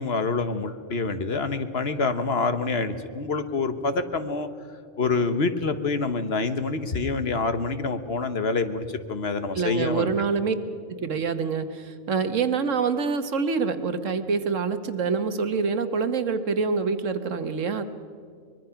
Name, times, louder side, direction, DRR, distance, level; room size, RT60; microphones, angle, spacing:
voice 1, 0.0-4.5 5.0-10.1, left 4 dB, 55° left, 10 dB, 1.3 m, -26 dB
voice 2, 9.5-10.5 10.9-17.8, right 5 dB, 75° right, 10 dB, 1.5 m, -26 dB
24.0 x 21.5 x 5.8 m, 2.2 s
omnidirectional pair, 1.3 m